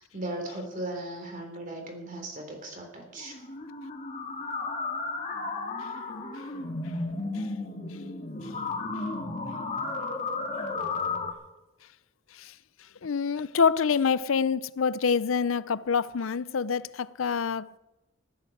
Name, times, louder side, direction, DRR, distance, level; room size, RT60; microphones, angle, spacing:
voice 1, 0.0-3.4, right 1 dB, 40° right, 3.6 m, -37 dB
sound 1, 3.2-11.3, left 3 dB, 35° left, 2.0 m, -33 dB
voice 2, 13.0-17.8, left 6 dB, 85° left, 0.5 m, -26 dB
14.5 x 12.5 x 6.6 m
head